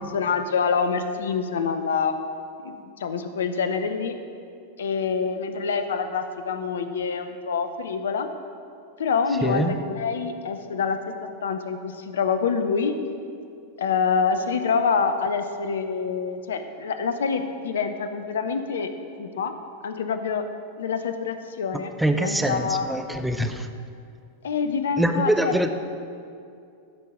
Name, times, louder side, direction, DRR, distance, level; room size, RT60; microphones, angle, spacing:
voice 1, 0.0-2.1 2.6-4.1 4.8-8.3 9.0-11.1 11.4-12.9 13.8-18.9 19.2-19.5 19.8-20.4 20.8-22.9 24.4-25.6, left 5 dB, 65° left, 9 dB, 0.6 m, -26 dB
voice 2, 9.4-9.7 22.0-23.7 25.0-25.7, right 1 dB, 5° right, 6 dB, 0.6 m, -24 dB
13.5 x 4.6 x 5.0 m, 2.4 s
figure-of-eight pair, 90°, 0 cm